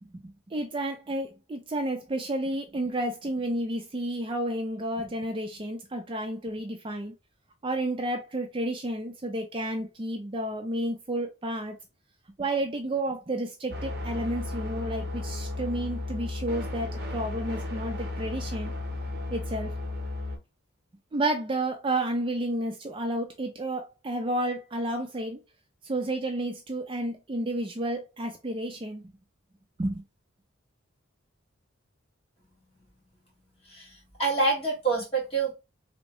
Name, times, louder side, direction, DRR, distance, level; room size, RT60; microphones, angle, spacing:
voice 1, 0.0-7.1 7.6-11.8 12.4-18.7 19.3-19.7 21.1-25.4 25.8-29.0 29.8-30.0, right 1 dB, 25° right, 0.4 m, -31 dB
sound 1, 13.7-20.4, left 2 dB, 50° right, 0.8 m, -34 dB
voice 2, 33.6-35.5, right 3 dB, 30° left, 1.6 m, -27 dB
3.5 x 2.1 x 3.0 m
head